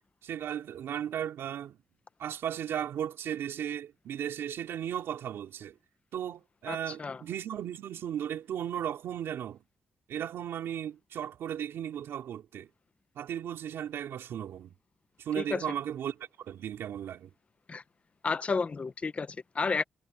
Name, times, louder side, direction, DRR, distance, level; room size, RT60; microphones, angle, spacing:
voice 1, 0.2-1.8 2.2-5.7 6.1-9.6 10.1-12.7 13.1-14.7 15.2-17.3, right 10 dB, 90° right, 3.1 m, -36 dB
voice 2, 6.7-7.2 15.4-15.8 17.7-17.8 18.2-19.8, left 4 dB, 30° left, 0.9 m, -32 dB
wide cardioid pair, 130°, 4 cm